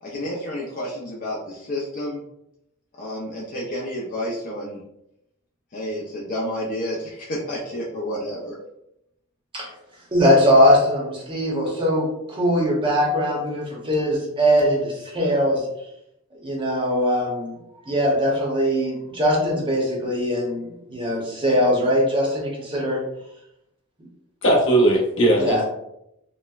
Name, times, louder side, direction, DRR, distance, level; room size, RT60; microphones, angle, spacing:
voice 1, 0.0-2.2 3.0-4.8 5.7-8.6, equal, 40° left, -4 dB, 0.5 m, -30 dB
voice 2, 10.1-15.6 16.4-17.6 17.8-23.0 25.4-25.6, equal, 25° right, -3 dB, 0.8 m, -21 dB
voice 3, 24.4-25.6, right 1 dB, 60° left, -4 dB, 1.0 m, -18 dB
4.1 x 2.1 x 2.3 m, 0.81 s
head